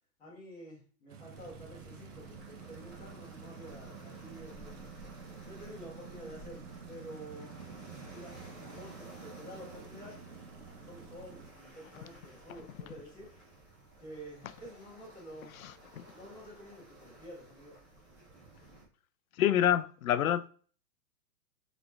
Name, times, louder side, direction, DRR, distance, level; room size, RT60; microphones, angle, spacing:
voice 1, 0.2-4.9 5.4-7.6 8.1-8.4 8.7-13.3 14.0-15.5 16.1-17.8, equal, 10° left, 1.6 m, -50 dB
sound 1, 1.1-11.5, right 7 dB, 75° right, 0.9 m, -50 dB
sound 2, 1.3-18.8, right 1 dB, 10° right, 0.7 m, -53 dB
voice 2, 15.6-16.0 19.4-20.5, left 11 dB, 65° left, 0.5 m, -28 dB
4.0 x 3.4 x 3.5 m
hypercardioid pair, 175°, 46 cm